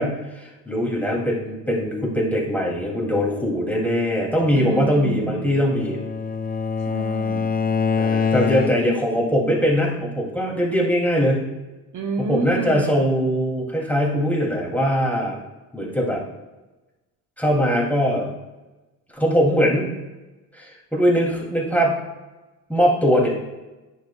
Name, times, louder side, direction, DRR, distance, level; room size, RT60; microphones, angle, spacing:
voice 1, 0.0-6.0 8.0-11.5 12.3-15.4 15.7-16.2 17.4-18.3 19.1-19.9 20.5-22.0 22.7-23.3, equal, 5° left, -3 dB, 2.7 m, -21 dB
voice 2, 4.5-5.6 6.9-7.6 11.9-12.9, right 3 dB, 50° right, 2 dB, 0.9 m, -29 dB
Bowed string instrument, 5.2-9.1, left 6 dB, 20° left, 0.5 m, -25 dB
10.5 x 6.4 x 2.3 m, 1.1 s
supercardioid pair, 70°, 40 cm